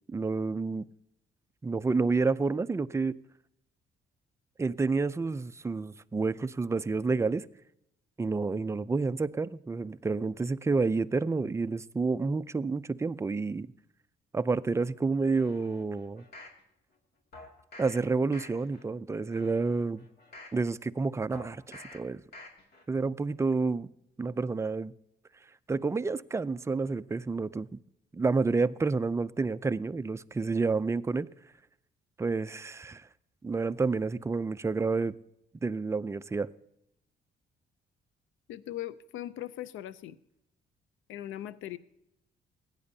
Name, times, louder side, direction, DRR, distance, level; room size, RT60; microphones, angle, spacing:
voice 1, 0.1-0.9 1.6-3.1 4.6-7.5 8.2-13.7 14.3-16.2 17.8-20.0 20.5-22.2 22.9-23.9 24.2-24.9 25.7-27.8 28.1-31.3 32.2-33.1 33.4-35.2 35.6-36.5, right 4 dB, 15° right, 0.4 m, -29 dB
sound 1, 15.3-16.6 17.3-18.0 18.3-18.8 19.3-20.6 21.3-22.0 22.3-22.8 23.2-23.3, left 2 dB, 55° left, 2.4 m, -49 dB
voice 2, 38.5-40.2 41.1-41.8, left 13 dB, 85° left, 0.5 m, -39 dB
16.5 x 9.7 x 2.7 m
cardioid pair, 90°, 20 cm